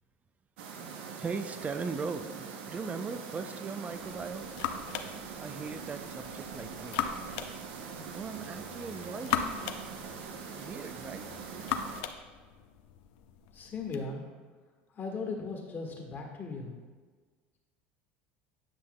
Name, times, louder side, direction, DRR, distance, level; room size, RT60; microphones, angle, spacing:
sound 1, 0.6-12.0, right 6 dB, 80° right, 0.7 m, -43 dB
voice 1, 1.2-4.5 5.4-7.2 8.1-9.4 10.6-11.3, right 4 dB, 25° right, 10 dB, 0.5 m, -39 dB
sound 2, 3.9-14.0, left 9 dB, 75° left, 0.5 m, -39 dB
voice 2, 13.5-14.2 14.9-16.7, left 4 dB, 35° left, 1 dB, 1.5 m, -37 dB
9.6 x 5.7 x 2.2 m, 1.4 s
supercardioid pair, 95°, 6 cm